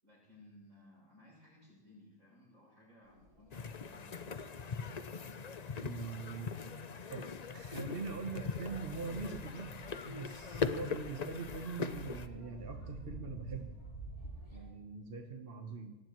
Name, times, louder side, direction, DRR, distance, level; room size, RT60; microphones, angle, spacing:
voice 1, 0.0-4.8, left 1 dB, 65° right, -1 dB, 7.2 m, -60 dB
sound 1, 3.1-14.7, right 2 dB, 75° left, 4.6 m, -51 dB
sound 2, 3.5-12.3, left 5 dB, 45° left, 0.5 m, -41 dB
voice 2, 5.8-6.5 7.1-9.8 10.0-13.8 14.5-16.0, right 4 dB, 45° right, 3 dB, 1.3 m, -43 dB
24.5 x 19.0 x 3.1 m, 1.2 s
omnidirectional pair, 1.5 m